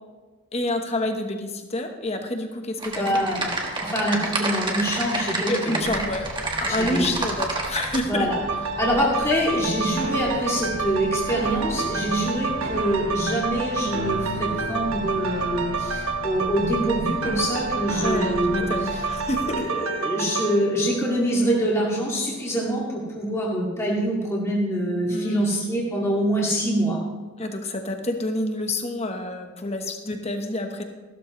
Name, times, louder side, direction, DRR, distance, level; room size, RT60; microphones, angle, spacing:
voice 1, 0.5-3.2 5.5-6.3 6.6-8.3 18.0-19.8 25.1-25.6 27.4-30.8, left 1 dB, 30° left, 5 dB, 1.1 m, -28 dB
Typing, 2.8-8.0, right 2 dB, 20° right, 1.4 m, -28 dB
voice 2, 3.0-3.5 3.8-6.0 6.7-7.1 8.0-8.4 8.8-19.0 19.4-27.0, equal, 15° left, -5 dB, 2.2 m, -25 dB
sound 1, 5.8-19.6, equal, 50° right, 1.8 m, -40 dB
sound 2, 8.3-22.0 22.5-22.6, right 4 dB, 85° right, 1.1 m, -29 dB
14.5 x 12.5 x 3.1 m, 1.3 s
head